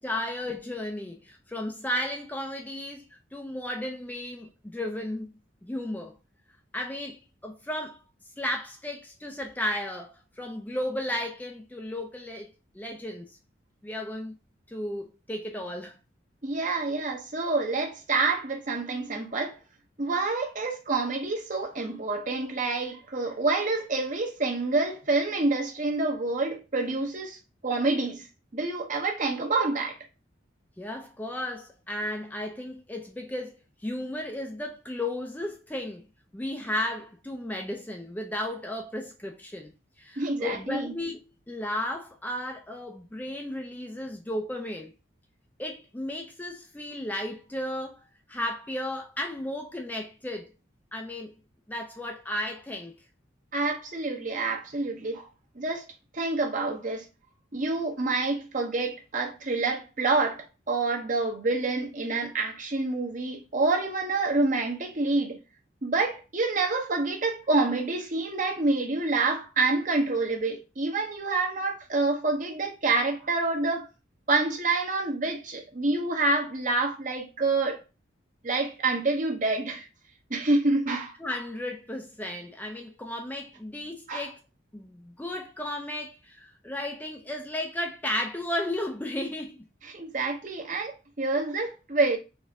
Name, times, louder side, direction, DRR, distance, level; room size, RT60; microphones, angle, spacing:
voice 1, 0.0-5.3 5.6-6.2 6.7-8.0 8.4-13.4 13.8-14.3 14.7-16.0 30.8-36.1 36.3-44.9 45.6-50.5 50.9-51.3 51.7-53.0 81.2-84.4 84.7-89.6, left 1 dB, 10° left, 0.4 m, -34 dB
voice 2, 16.4-19.6 20.0-27.4 27.6-28.3 28.5-30.0 40.2-40.9 53.5-55.3 55.5-55.9 56.1-57.0 57.5-65.4 65.8-73.9 74.3-77.8 78.4-79.9 80.3-81.1 84.1-84.3 89.8-92.2, right 3 dB, 40° right, 0.9 m, -27 dB
4.1 x 2.5 x 3.4 m
head